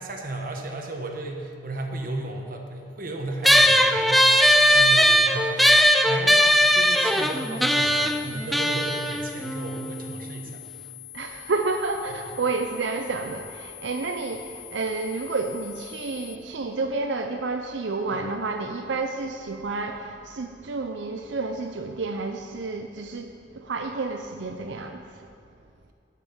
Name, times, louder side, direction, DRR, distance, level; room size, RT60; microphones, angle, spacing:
voice 1, 0.0-4.3 4.7-10.6, right 2 dB, 50° right, 3 dB, 1.2 m, -34 dB
sound 1, 3.4-10.2, equal, ahead, 0.3 m, -19 dB
sound 2, 6.4-16.4, left 13 dB, 65° left, 1.9 m, -43 dB
voice 2, 11.1-25.2, right 3 dB, 80° right, 4 dB, 0.6 m, -30 dB
11.5 x 5.8 x 7.0 m, 2.3 s
head